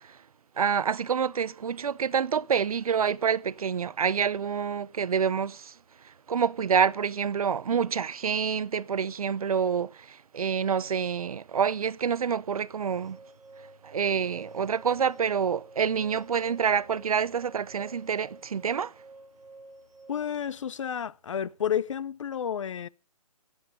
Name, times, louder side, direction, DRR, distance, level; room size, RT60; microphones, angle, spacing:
voice 1, 0.6-5.7 6.3-13.2 13.8-18.9, right 7 dB, 70° right, 0.7 m, -27 dB
sound 1, 12.9-20.4, right 2 dB, 5° right, 1.9 m, -51 dB
voice 2, 20.1-22.9, left 9 dB, 55° left, 0.6 m, -31 dB
20.0 x 8.0 x 5.2 m
hypercardioid pair, 155°, 20 cm